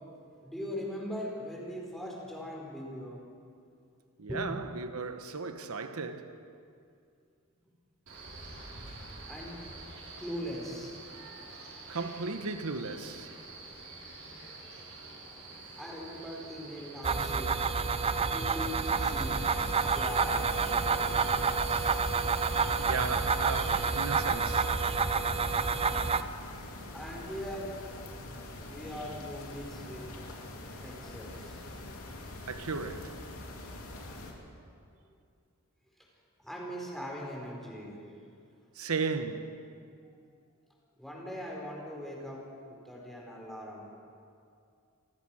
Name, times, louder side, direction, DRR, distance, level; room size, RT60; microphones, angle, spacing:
voice 1, 0.4-3.2 4.3-4.5 9.3-9.5 10.2-11.0 15.8-17.6 18.3-19.5 19.9-21.4 26.9-28.0 28.6-30.1 30.7-31.6 36.4-38.0 41.0-43.9, equal, ahead, 4.5 m, -40 dB
voice 2, 4.2-6.5 11.9-13.4 22.8-24.8 32.5-33.2 38.7-39.9, right 4 dB, 90° right, 1.1 m, -36 dB
Male speech man speaking, 8.1-24.3, right 3 dB, 70° right, 6.1 m, -47 dB
sound 1, 17.0-26.2, right 5 dB, 25° right, 0.6 m, -29 dB
sound 2, 18.9-34.3, left 1 dB, 85° left, 3.0 m, -43 dB
29.0 x 14.5 x 6.4 m
head